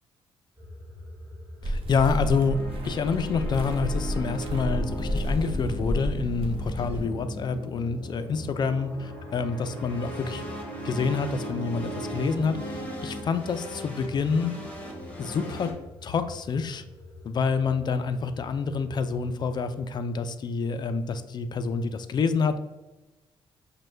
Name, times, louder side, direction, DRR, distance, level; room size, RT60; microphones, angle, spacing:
sound 1, 0.6-19.9, left 1 dB, 15° right, 1.2 m, -46 dB
voice 1, 1.6-2.6 2.8-10.4 10.8-12.6 13.0-14.5 15.2-15.7 16.0-16.8 17.2-22.6, left 5 dB, 45° left, 10 dB, 0.3 m, -27 dB
sound 2, 1.6-7.1, equal, 65° right, 0.7 m, -31 dB
sound 3, 2.1-15.7, right 1 dB, 15° left, 1.1 m, -38 dB
6.1 x 2.2 x 3.2 m, 1.1 s
cardioid pair, 110°, 10 cm